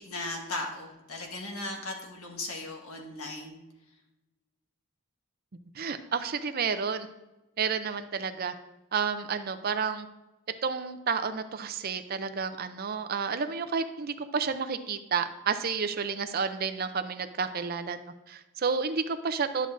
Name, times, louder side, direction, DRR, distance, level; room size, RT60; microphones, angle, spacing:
voice 1, 0.0-3.6, left 2 dB, 85° left, 1 dB, 1.6 m, -37 dB
voice 2, 5.7-7.1 7.6-8.5 8.9-10.1 10.6-18.0 18.3-19.7, right 5 dB, 45° right, 9 dB, 0.5 m, -30 dB
11.5 x 6.4 x 2.6 m, 0.99 s
head